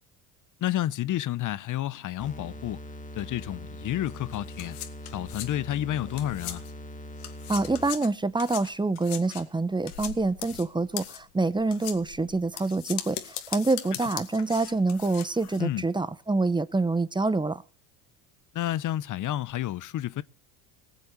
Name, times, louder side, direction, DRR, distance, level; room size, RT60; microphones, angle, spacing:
voice 1, 0.6-2.8 3.1-4.8 5.1-6.6 15.6-15.8 18.5-20.2, left 13 dB, 45° left, 0.9 m, -30 dB
sound 1, 2.2-8.1, equal, 15° left, 1.9 m, -42 dB
sound 2, 4.1-6.9 7.2-15.6, left 12 dB, 85° left, 2.1 m, -40 dB
voice 2, 7.5-17.6, right 3 dB, 10° right, 0.9 m, -26 dB
20.0 x 7.9 x 7.1 m
supercardioid pair, 85°, 43 cm